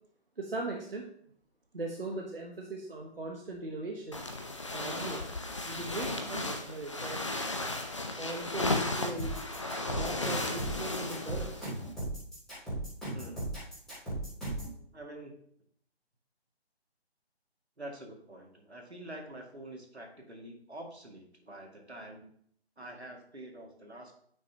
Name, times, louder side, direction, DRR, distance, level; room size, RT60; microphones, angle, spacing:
voice 1, 0.4-1.1 1.7-4.2 4.7-5.2 5.6-7.2 8.2-9.4 10.0-11.7, right 2 dB, 60° right, 0 dB, 1.2 m, -39 dB
sound 1, 4.1-11.9, left 2 dB, 30° left, 0.6 m, -35 dB
sound 2, 9.2-14.7, right 1 dB, ahead, 3.1 m, -36 dB
voice 2, 13.1-13.5 14.9-15.4 17.8-22.3 22.8-24.1, right 1 dB, 80° right, 1 dB, 2.3 m, -46 dB
9.7 x 6.1 x 2.9 m, 0.65 s
figure-of-eight pair, 150°, 32 cm